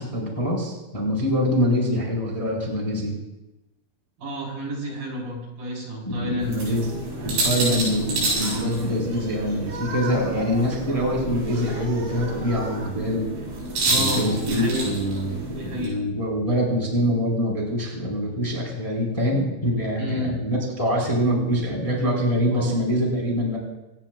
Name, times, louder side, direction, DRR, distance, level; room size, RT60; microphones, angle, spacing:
voice 1, 0.0-3.2 6.1-6.9 7.2-13.2 13.9-15.4 15.7-23.6, equal, 10° left, -1 dB, 3.7 m, -24 dB
voice 2, 4.2-6.8 8.4-8.7 13.9-14.9 15.5-16.0 20.0-20.4 22.5-22.8, equal, 45° right, -2 dB, 5.6 m, -30 dB
sound 1, 6.4-15.9, right 2 dB, 75° right, 9.1 m, -29 dB
26.0 x 19.0 x 2.4 m, 0.99 s
omnidirectional pair, 5.5 m